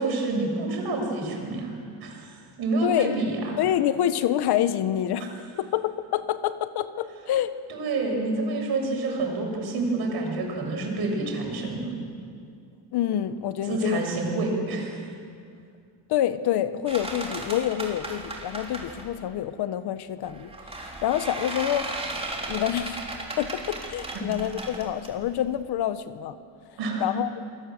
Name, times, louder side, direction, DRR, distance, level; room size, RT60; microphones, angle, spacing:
voice 1, 0.0-3.4 7.7-11.9 13.7-15.0 26.8-27.0, right 3 dB, 55° right, 1 dB, 7.4 m, -28 dB
voice 2, 2.8-3.2 3.6-7.5 12.9-14.0 16.1-21.9 22.4-23.0 23.4-26.4 26.7-27.3, left 11 dB, 55° left, 12 dB, 1.2 m, -27 dB
sound 1, 16.9-19.2 20.2-25.6, right 2 dB, 10° right, 3.7 m, -36 dB
27.5 x 21.0 x 7.9 m, 2.3 s
cardioid pair, 130°, 46 cm